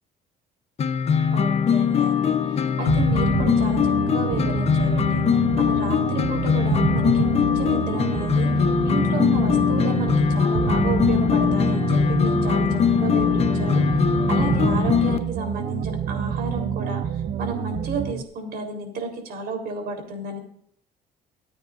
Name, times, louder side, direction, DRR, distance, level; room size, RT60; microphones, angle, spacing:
sound 1, 0.8-15.2, left 7 dB, 40° left, 0.8 m, -21 dB
voice 1, 1.3-5.2 5.5-13.8 14.3-20.4, right 2 dB, 65° right, 3 dB, 3.7 m, -32 dB
sound 2, 2.9-18.2, right 9 dB, 50° right, 0.6 m, -27 dB
24.5 x 9.6 x 2.5 m, 0.70 s
cardioid pair, 110°, 17 cm